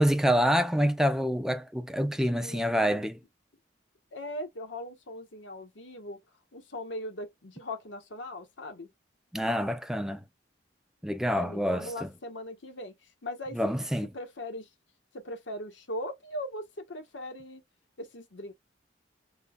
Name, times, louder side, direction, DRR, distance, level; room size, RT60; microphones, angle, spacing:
voice 1, 0.0-3.2 9.3-10.2 11.0-12.1 13.5-14.1, equal, 5° right, 0.4 m, -27 dB
voice 2, 2.3-3.0 4.1-6.2 6.5-8.9 11.3-12.9 13.2-13.6 14.1-14.7 15.1-17.6 18.0-18.5, left 1 dB, 85° left, 1.1 m, -39 dB
5.4 x 2.3 x 2.2 m
head